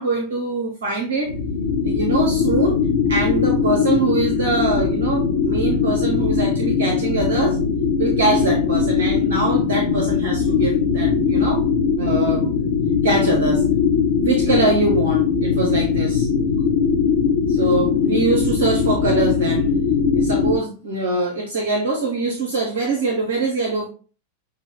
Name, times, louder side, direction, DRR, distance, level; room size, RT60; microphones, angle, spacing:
voice 1, 0.0-1.3 1.8-2.8 3.1-7.6 8.0-12.6 13.0-13.6 14.2-16.3 17.5-19.7 20.1-23.9, right 2 dB, 60° right, 2 dB, 0.8 m, -23 dB
sound 1, 1.3-20.6, left 6 dB, 70° left, 1.0 m, -20 dB
6.4 x 2.3 x 3.6 m, 0.37 s
figure-of-eight pair, 90°, 0 cm